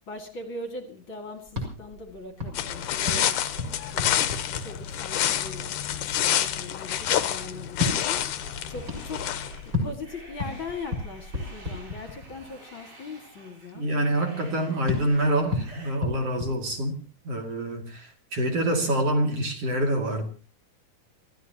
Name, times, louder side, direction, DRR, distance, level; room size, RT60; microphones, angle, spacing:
voice 1, 0.1-3.5 3.9-8.3 8.7-9.4 9.6-13.9, left 3 dB, 40° left, 2.2 m, -40 dB
sound 1, 1.5-5.3 7.7-12.5 14.9-17.3, left 3 dB, 25° right, 6.1 m, -34 dB
sound 2, 2.5-9.7, left 11 dB, 65° left, 2.1 m, -28 dB
sound 3, 8.3-15.9, right 2 dB, 60° right, 9.7 m, -50 dB
voice 2, 13.7-17.0 17.2-20.2, right 1 dB, 40° right, 3.1 m, -26 dB
29.0 x 15.0 x 2.9 m
omnidirectional pair, 4.8 m